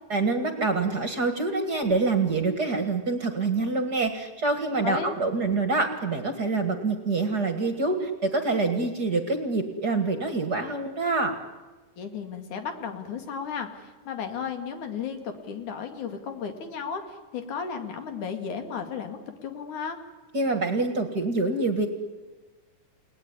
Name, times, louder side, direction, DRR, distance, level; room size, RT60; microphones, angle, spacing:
voice 1, 0.1-11.3 20.3-21.9, right 3 dB, 40° right, 6 dB, 1.9 m, -26 dB
voice 2, 4.8-5.1 12.0-20.0, left 6 dB, 75° left, 6 dB, 3.7 m, -34 dB
29.5 x 18.5 x 9.8 m, 1.2 s
omnidirectional pair, 3.6 m